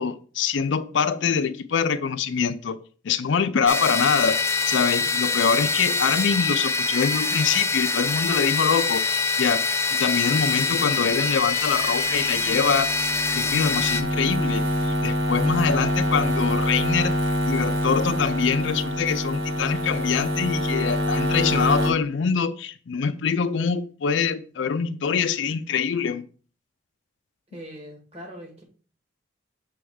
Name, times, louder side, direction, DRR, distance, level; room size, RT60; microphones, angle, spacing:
voice 1, 0.0-2.8 3.0-4.4 4.6-9.6 10.0-12.9 13.3-17.1 17.5-26.2, left 6 dB, 65° left, 0.4 m, -24 dB
sound 1, 3.7-14.0, left 4 dB, 15° left, 0.5 m, -24 dB
sound 2, 10.2-21.9, equal, 85° right, 1.2 m, -26 dB
voice 2, 27.5-28.6, equal, 30° right, 2.2 m, -41 dB
7.0 x 3.4 x 4.9 m
head